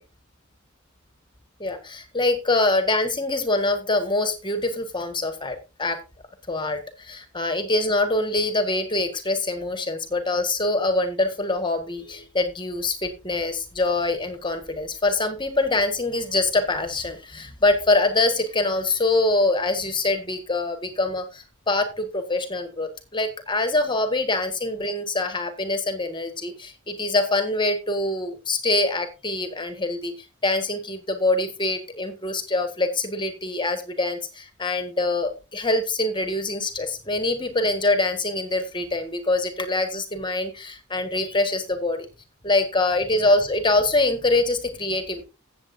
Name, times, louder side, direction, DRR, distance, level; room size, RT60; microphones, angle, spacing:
voice 1, 1.6-6.0 6.5-30.1 30.4-42.0 42.4-45.2, left 2 dB, 25° left, 8 dB, 1.6 m, -24 dB
16.0 x 7.6 x 2.7 m, 0.29 s
head